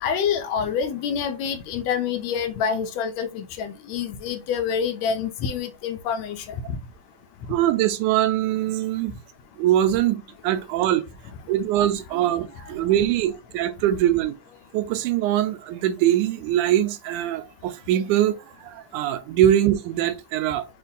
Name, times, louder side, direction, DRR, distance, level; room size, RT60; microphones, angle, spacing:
voice 1, 0.0-6.8, left 7 dB, 75° left, 1.8 m, -27 dB
voice 2, 7.5-9.2 9.6-11.0 11.5-14.4 14.7-20.7, right 12 dB, 85° right, 2.1 m, -22 dB
5.5 x 2.5 x 3.8 m
omnidirectional pair, 3.5 m